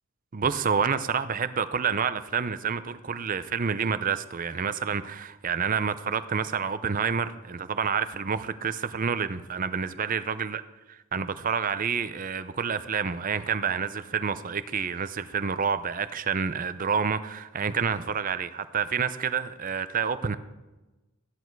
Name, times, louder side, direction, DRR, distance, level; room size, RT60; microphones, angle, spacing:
voice 1, 0.3-10.6 11.1-20.4, right 6 dB, 40° right, 0.6 m, -28 dB
14.0 x 10.5 x 4.6 m
head